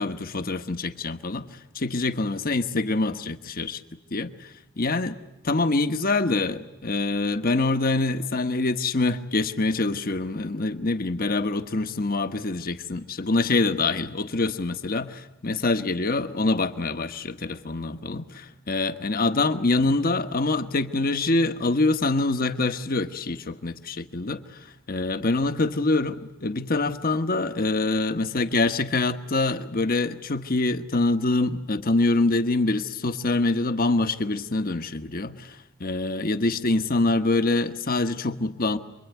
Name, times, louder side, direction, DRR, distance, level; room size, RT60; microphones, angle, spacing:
voice 1, 0.0-1.5 1.7-3.8 4.1-4.5 4.8-5.2 5.4-24.6 24.9-38.8, left 2 dB, 45° left, 9 dB, 1.2 m, -25 dB
28.0 x 23.0 x 9.4 m, 0.93 s
head